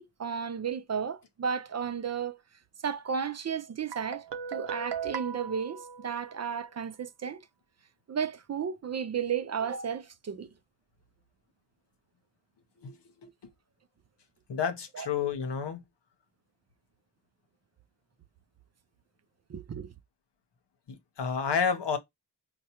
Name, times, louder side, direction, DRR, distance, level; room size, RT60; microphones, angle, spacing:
voice 1, 0.0-2.4 2.8-7.4 8.1-10.5 14.9-15.1 19.5-19.9, right 7 dB, 40° right, 0.4 m, -33 dB
Guitar, 3.9-6.7, right 7 dB, 85° right, 0.7 m, -38 dB
voice 2, 12.8-13.3 14.5-15.8 20.9-22.0, left 6 dB, 75° left, 0.8 m, -30 dB
4.4 x 2.2 x 2.8 m
cardioid pair, 50°, 42 cm